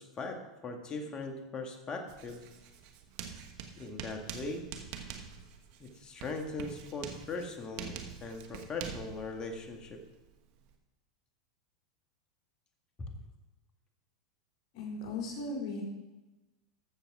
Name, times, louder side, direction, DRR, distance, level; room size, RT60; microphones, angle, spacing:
voice 1, 0.0-2.4 3.8-4.7 5.8-10.0 13.0-13.1, left 3 dB, 25° left, 4 dB, 1.8 m, -40 dB
Writing, 2.1-10.7, right 7 dB, 55° right, 1.4 m, -46 dB
voice 2, 14.7-15.8, left 3 dB, 55° left, -1 dB, 4.3 m, -37 dB
14.0 x 6.9 x 4.9 m, 1.1 s
hypercardioid pair, 115°, 3 cm